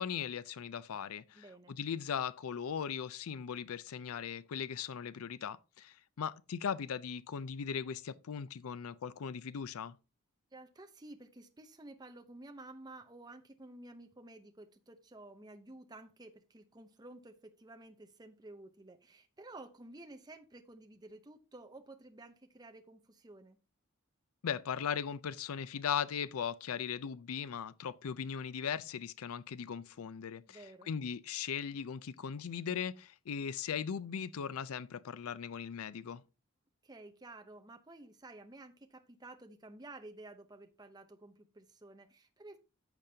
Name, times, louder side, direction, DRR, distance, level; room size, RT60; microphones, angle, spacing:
voice 1, 0.0-10.0 24.4-36.2, left 7 dB, 80° left, 0.4 m, -38 dB
voice 2, 1.3-1.8 10.5-23.6 30.5-30.9 36.8-42.6, right 2 dB, 20° right, 0.7 m, -52 dB
14.0 x 5.2 x 2.8 m
head